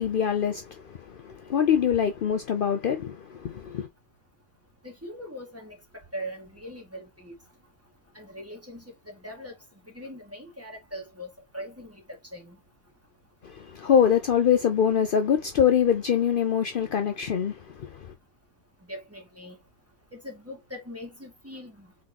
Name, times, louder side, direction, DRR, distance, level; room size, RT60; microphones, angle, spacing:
voice 1, 0.0-3.9 13.4-18.1, left 8 dB, 70° left, 0.5 m, -24 dB
voice 2, 4.8-5.8 6.1-7.4 8.1-9.5 9.9-12.0 12.3-12.6 18.9-19.6 20.1-21.9, equal, 10° right, 1.9 m, -41 dB
4.5 x 4.0 x 2.9 m
omnidirectional pair, 1.6 m